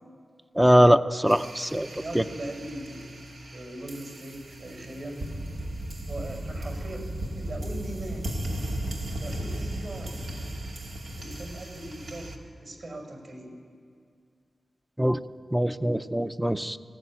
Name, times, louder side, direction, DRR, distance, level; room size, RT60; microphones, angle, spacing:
voice 1, 0.6-1.9 2.1-2.2 15.0-15.2 15.5-16.8, equal, 5° right, 11 dB, 0.7 m, -21 dB
sound 1, 1.3-12.4, right 1 dB, 80° right, 2.6 m, -36 dB
voice 2, 1.9-3.1 3.5-5.3 6.1-7.0 7.4-8.3 9.1-10.3 11.2-13.6, right 1 dB, 55° right, 3 dB, 5.7 m, -40 dB
22.5 x 17.5 x 10.0 m, 2.3 s
wide cardioid pair, 120°, 0 cm